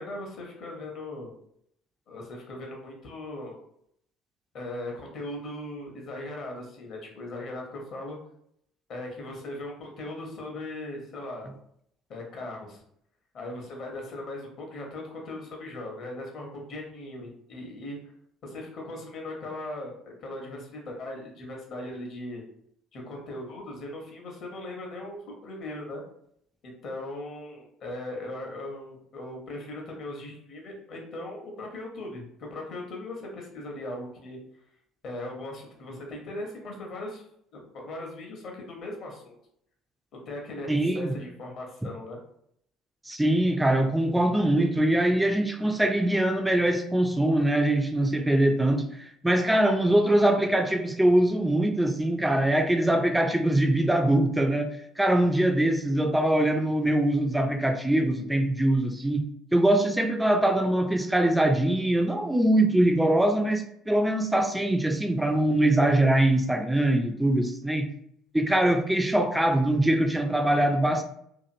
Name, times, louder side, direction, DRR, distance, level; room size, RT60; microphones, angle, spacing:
voice 1, 0.0-1.3 2.1-3.6 4.5-8.2 8.9-11.5 12.1-12.8 13.3-18.0 18.4-22.4 22.9-26.0 26.6-34.4 35.0-37.2 37.5-39.3 40.3-42.2, left 1 dB, 50° left, 0.9 m, -38 dB
voice 2, 40.7-41.1 43.1-59.2 59.5-67.9 68.3-71.0, right 1 dB, 5° right, 0.4 m, -23 dB
2.8 x 2.5 x 2.5 m
figure-of-eight pair, 55°, 0 cm